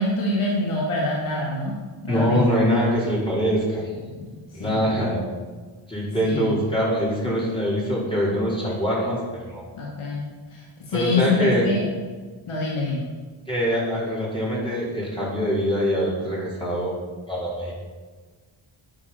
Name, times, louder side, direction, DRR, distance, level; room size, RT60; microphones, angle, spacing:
voice 1, 0.0-1.7 2.0-2.4 4.1-4.3 4.6-5.0 6.2-6.6 9.7-10.2 10.5-10.6 10.9-11.8 12.5-13.0, left 2 dB, 90° left, -4 dB, 2.6 m, -25 dB
voice 2, 2.1-3.9 4.5-5.2 5.9-9.6 10.9-11.7 13.5-17.0 17.3-17.7, equal, 10° left, -8 dB, 4.9 m, -23 dB
11.5 x 10.0 x 6.1 m, 1.4 s
wide cardioid pair, 100°, 48 cm